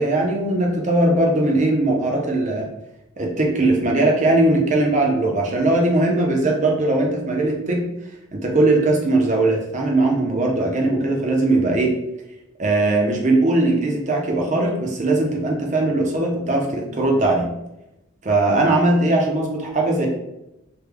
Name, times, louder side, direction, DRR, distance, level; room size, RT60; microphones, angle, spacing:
voice 1, 0.0-2.7 3.2-7.9 8.3-12.0 12.6-17.5 18.3-20.1, right 2 dB, 35° right, 0 dB, 0.6 m, -19 dB
3.3 x 2.2 x 3.4 m, 0.90 s
head